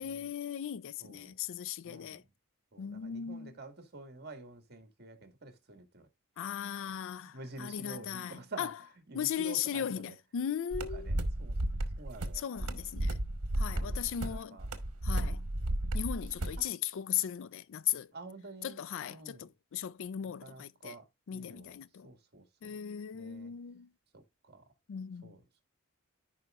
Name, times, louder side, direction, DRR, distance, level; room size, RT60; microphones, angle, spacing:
voice 1, 0.0-2.2 2.8-3.5 6.4-8.7 9.1-11.1 12.3-13.2 13.6-14.6 15.0-15.5 15.9-18.1 18.6-21.0 21.3-22.1 22.6-23.9 24.9-25.4, left 9 dB, 60° left, 0.4 m, -37 dB
voice 2, 1.0-1.4 1.8-2.2 2.7-6.1 6.8-7.0 7.3-8.7 9.1-10.2 10.9-11.5 12.0-12.4 12.8-12.9 13.7-14.7 16.6-16.7 18.1-18.8 19.1-19.5 20.4-21.1 21.3-21.8 22.0-22.8 23.1-23.5 24.1-24.6 25.2-25.6, right 2 dB, 45° right, 1.9 m, -49 dB
sound 1, 10.7-16.6, right 1 dB, 75° right, 1.2 m, -33 dB
14.0 x 5.2 x 2.4 m
head